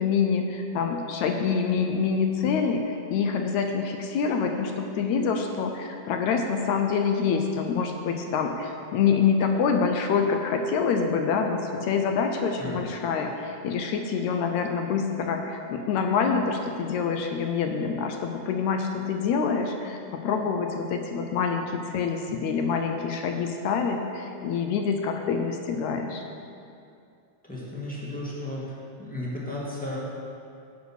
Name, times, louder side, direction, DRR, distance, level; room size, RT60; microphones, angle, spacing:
voice 1, 0.0-26.3, left 5 dB, 75° left, 4 dB, 1.9 m, -26 dB
voice 2, 27.4-28.7 29.0-30.0, left 1 dB, 5° left, -7 dB, 1.7 m, -34 dB
9.9 x 7.4 x 6.3 m, 2.5 s
omnidirectional pair, 3.6 m